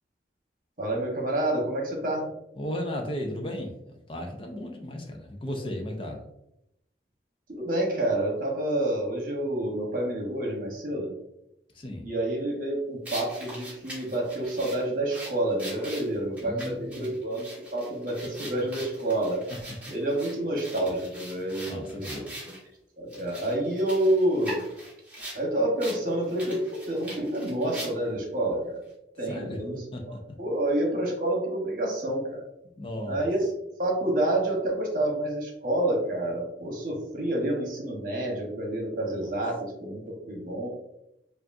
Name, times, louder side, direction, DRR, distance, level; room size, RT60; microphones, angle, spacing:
voice 1, 0.8-2.2 7.5-11.1 12.0-19.4 19.9-22.5 23.0-24.6 25.3-28.8 29.2-32.4 33.1-33.5 33.8-40.7, right 1 dB, 50° right, -1 dB, 1.1 m, -28 dB
voice 2, 2.6-3.7 4.1-6.2 11.7-12.1 16.4-17.1 21.7-22.4 29.2-29.6 29.9-30.2 32.8-33.2 39.1-39.2, left 1 dB, 30° left, 2 dB, 0.5 m, -35 dB
sound 1, 13.0-22.6 23.1-25.4 25.8-26.0 26.3-28.2, right 1 dB, 10° right, 1.2 m, -42 dB
4.9 x 2.5 x 2.6 m, 0.83 s
head